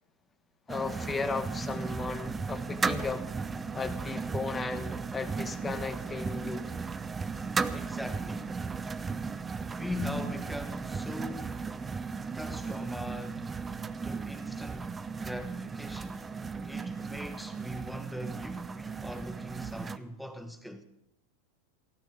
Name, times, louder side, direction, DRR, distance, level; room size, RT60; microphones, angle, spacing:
voice 1, 0.7-3.3 3.7-6.7, left 4 dB, 15° left, 1.2 m, -35 dB
sound 1, 0.7-20.0, right 4 dB, 15° right, 0.6 m, -36 dB
voice 2, 7.7-8.6 9.7-11.7 12.3-13.5 14.0-16.3 16.6-20.8, left 1 dB, ahead, 1.4 m, -41 dB
15.0 x 12.5 x 5.1 m
supercardioid pair, 125°, 0 cm